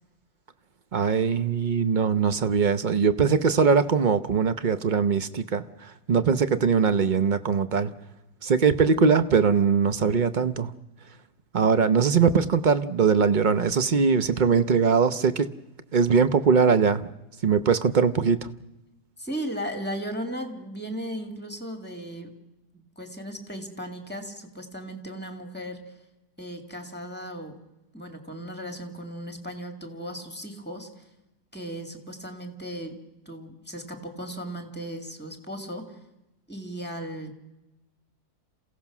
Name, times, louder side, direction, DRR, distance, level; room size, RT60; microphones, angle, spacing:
voice 1, 0.9-7.9 8.4-10.7 11.5-15.5 15.9-17.1 17.4-18.5, right 6 dB, 45° right, 12 dB, 0.7 m, -21 dB
voice 2, 19.2-22.3 22.7-25.8 26.4-27.5 27.9-30.9 31.5-33.0 33.3-36.0 36.5-37.4, equal, 5° left, 6 dB, 2.2 m, -36 dB
28.0 x 16.0 x 6.0 m, 0.96 s
omnidirectional pair, 1.7 m